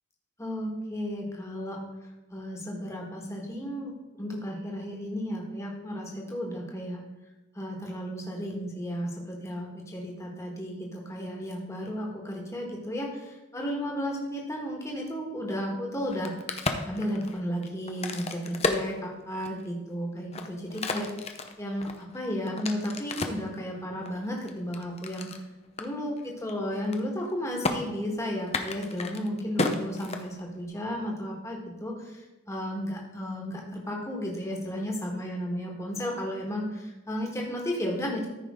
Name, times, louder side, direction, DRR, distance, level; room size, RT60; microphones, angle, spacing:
voice 1, 0.4-1.8 2.3-3.9 4.2-7.0 7.5-16.3 16.8-25.4 25.8-38.3, equal, 15° left, -1 dB, 1.6 m, -33 dB
Crack, 16.0-19.7 20.2-23.5 24.1-25.4 25.8-25.9 26.2-26.5 26.8-27.3 27.6-27.8 28.4-30.7, left 3 dB, 30° left, 0.7 m, -32 dB
14.0 x 5.3 x 3.7 m, 1.1 s
head